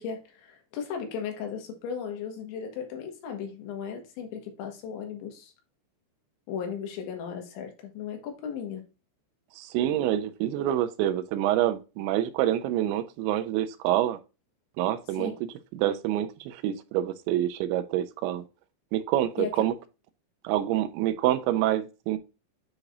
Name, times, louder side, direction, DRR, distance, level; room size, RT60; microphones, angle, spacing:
voice 1, 0.0-5.5 6.5-8.8 15.2-15.4 19.4-19.6, left 7 dB, 80° left, 3.8 m, -36 dB
voice 2, 9.6-14.2 14.8-18.4 18.9-19.7 20.4-22.2, right 12 dB, 90° right, 2.9 m, -27 dB
9.7 x 4.8 x 2.5 m
omnidirectional pair, 5.2 m